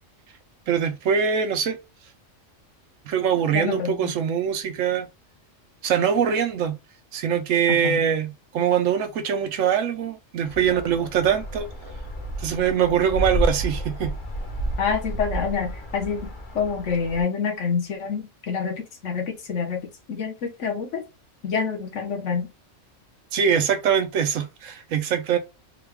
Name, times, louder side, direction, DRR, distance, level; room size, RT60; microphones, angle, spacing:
voice 1, 0.7-1.8 3.1-5.1 5.8-6.8 7.1-11.7 12.4-14.2 23.3-25.4, right 8 dB, 75° right, 1.0 m, -23 dB
voice 2, 3.5-4.1 7.7-8.0 14.8-21.0 21.4-22.5, left 6 dB, 65° left, 1.2 m, -27 dB
sound 1, 10.4-17.2, right 1 dB, 40° left, 1.0 m, -31 dB
Laughter, 10.6-12.3 13.2-14.5, right 2 dB, 30° right, 0.7 m, -44 dB
3.8 x 2.3 x 3.4 m
omnidirectional pair, 1.4 m